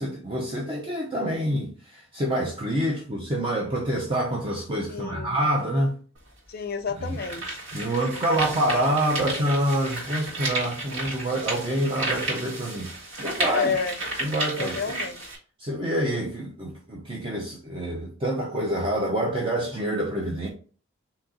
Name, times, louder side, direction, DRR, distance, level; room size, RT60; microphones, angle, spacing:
voice 1, 0.0-6.0 7.0-7.2 7.7-13.7 14.2-14.8 15.6-20.5, right 1 dB, 25° right, 0.6 m, -27 dB
voice 2, 4.8-5.4 6.5-7.6 8.0-8.5 13.5-14.0 14.6-15.2, left 5 dB, 50° left, 0.5 m, -31 dB
sound 1, 6.2-6.3 6.9-15.4, right 2 dB, 70° right, 1.7 m, -32 dB
4.1 x 2.8 x 3.8 m
head